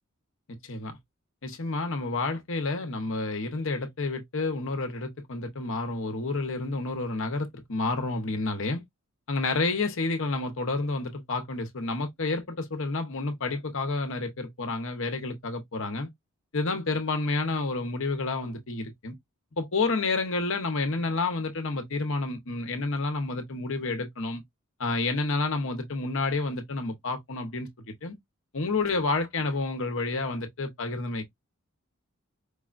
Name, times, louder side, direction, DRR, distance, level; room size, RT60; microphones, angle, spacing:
voice 1, 1.4-8.8 9.3-16.1 16.5-19.1 19.6-24.4 24.8-28.2 28.5-31.2, left 3 dB, 65° left, 1.0 m, -30 dB
4.8 x 2.3 x 2.4 m
head